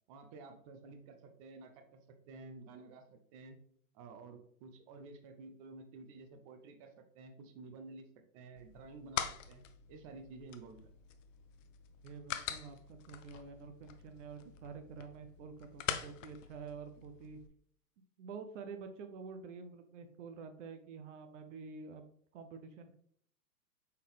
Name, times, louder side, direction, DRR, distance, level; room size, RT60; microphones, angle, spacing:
voice 1, 0.1-3.6 3.9-8.1 8.3-10.9, right 3 dB, 25° right, 7 dB, 0.4 m, -52 dB
sound 1, 8.6-17.5, left 10 dB, 55° left, 0.6 m, -44 dB
voice 2, 12.0-17.4 18.2-22.1 22.3-22.9, right 5 dB, 55° right, 7 dB, 0.7 m, -48 dB
4.4 x 3.6 x 3.3 m, 0.62 s
hypercardioid pair, 115°, 46 cm